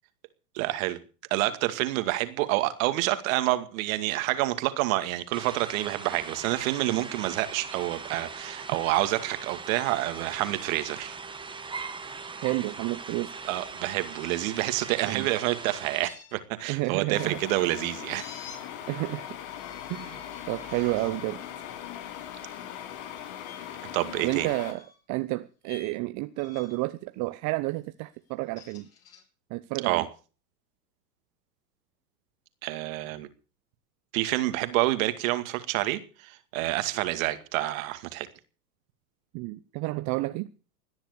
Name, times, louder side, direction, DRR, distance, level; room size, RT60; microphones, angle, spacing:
voice 1, 0.5-1.0 1.3-11.2 13.4-18.4 23.9-24.5 29.8-30.1 32.6-33.3 34.1-38.3, right 17 dB, 55° right, 2.3 m, -28 dB
sound 1, 5.3-16.1, right 4 dB, 10° right, 1.6 m, -40 dB
voice 2, 12.4-13.3 15.0-15.3 16.7-17.4 18.9-19.3 19.9-21.4 24.2-28.9 29.5-30.1 39.3-40.5, right 21 dB, 35° right, 0.8 m, -31 dB
sound 2, 14.0-15.2 16.0-17.0 18.2-18.6 19.4-20.8 21.4-21.6 23.4-23.6 24.4-25.0 25.6-25.9 26.4-26.9 28.3-29.2, left 6 dB, 30° left, 5.3 m, -50 dB
sound 3, 17.1-24.7, left 10 dB, 50° left, 2.7 m, -40 dB
18.0 x 10.5 x 6.7 m
hypercardioid pair, 105°, 49 cm